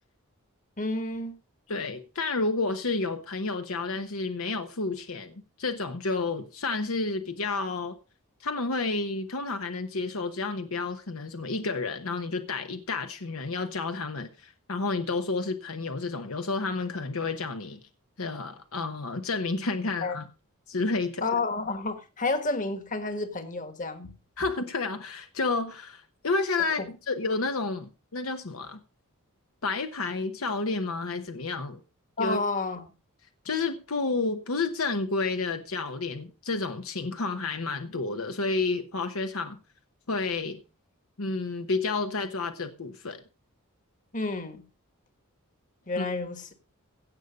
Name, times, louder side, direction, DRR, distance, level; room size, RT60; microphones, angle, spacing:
voice 1, 0.8-1.3 20.0-20.2 21.2-24.1 26.8-26.9 32.2-32.9 44.1-44.6 45.9-46.5, left 3 dB, 35° left, 1.6 m, -30 dB
voice 2, 1.7-7.9 8.4-17.8 18.2-20.2 20.7-21.3 24.4-26.8 27.1-28.8 29.6-31.8 32.2-32.4 33.4-39.6 40.1-40.6 41.2-43.2 46.0-46.1, left 3 dB, 70° left, 1.0 m, -30 dB
16.5 x 6.8 x 5.2 m
head